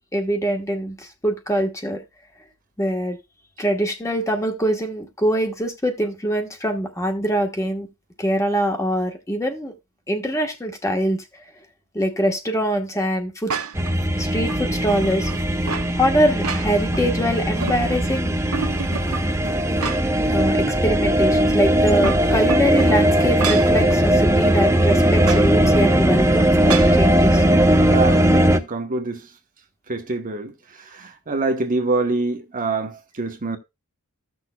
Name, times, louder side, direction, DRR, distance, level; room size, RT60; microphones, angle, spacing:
voice 1, 0.1-2.0 2.8-3.2 3.6-7.9 8.2-9.7 10.1-11.2 11.9-13.5 13.9-15.3 15.9-18.4 20.3-27.4, equal, 15° left, 1.2 m, -23 dB
sound 1, 13.5-13.9 14.4-15.9 16.3-17.0 17.4-18.1 18.5-20.3 20.7-20.8 21.8-23.8 25.2-25.5 26.7-27.0, right 5 dB, 70° right, 1.0 m, -30 dB
sound 2, 13.8-28.6, right 1 dB, 10° right, 0.6 m, -19 dB
voice 2, 27.9-29.3 29.9-33.6, right 3 dB, 40° right, 1.0 m, -25 dB
15.0 x 6.4 x 2.3 m
head